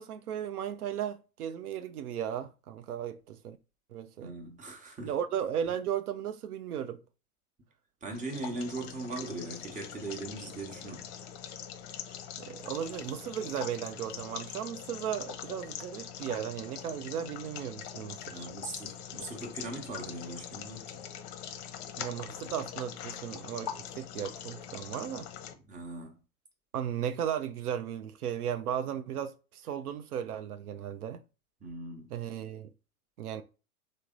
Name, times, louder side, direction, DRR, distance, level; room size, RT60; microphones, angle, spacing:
voice 1, 0.0-3.6 3.9-4.3 5.0-7.0 12.4-18.5 22.0-25.3 26.7-31.2 32.1-32.7 33.2-33.4, right 9 dB, 85° right, 0.5 m, -36 dB
voice 2, 4.2-5.1 8.0-11.2 18.3-21.0 25.6-26.1 31.6-32.1, right 2 dB, 15° right, 1.0 m, -40 dB
sound 1, 8.1-25.5, left 9 dB, 45° left, 0.7 m, -43 dB
3.3 x 2.1 x 3.7 m
hypercardioid pair, 105°, 44 cm